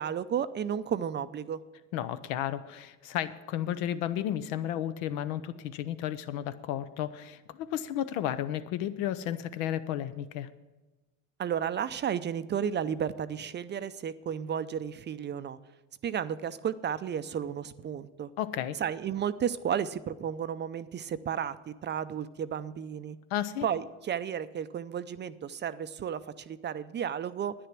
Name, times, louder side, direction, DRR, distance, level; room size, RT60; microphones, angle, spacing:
voice 1, 0.0-1.6 11.4-15.6 16.0-18.3 18.8-23.2 23.6-27.5, right 8 dB, 30° right, 14 dB, 0.4 m, -33 dB
voice 2, 1.9-10.5 18.4-18.8 23.3-23.7, left 11 dB, 85° left, 12 dB, 0.8 m, -33 dB
10.0 x 9.7 x 6.0 m, 1.2 s
supercardioid pair, 100°, 38 cm